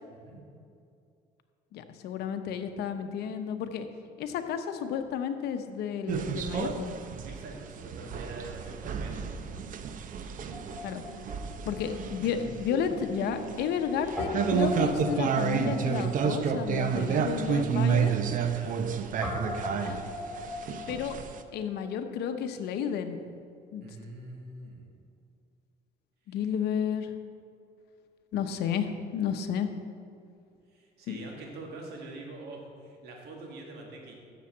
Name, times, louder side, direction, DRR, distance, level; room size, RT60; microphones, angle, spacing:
voice 1, 0.1-0.4 7.2-9.5 18.5-18.9 23.8-24.9 26.3-26.5 30.7-34.1, right 2 dB, 75° right, 0 dB, 2.1 m, -45 dB
voice 2, 1.7-3.9 4.2-6.9 10.8-11.0 11.7-18.1 19.5-20.0 20.9-21.2 21.5-23.2 23.7-23.9 26.3-27.1 28.3-29.7 31.1-31.3, left 8 dB, 75° left, 8 dB, 0.8 m, -32 dB
sound 1, 6.1-21.4, right 7 dB, 55° right, 0.6 m, -31 dB
Guitar, 10.5-12.9 13.2-13.3 14.2-22.0, left 2 dB, ahead, 2.2 m, -40 dB
7.3 x 7.0 x 7.3 m, 2.4 s
cardioid pair, 110°, 17 cm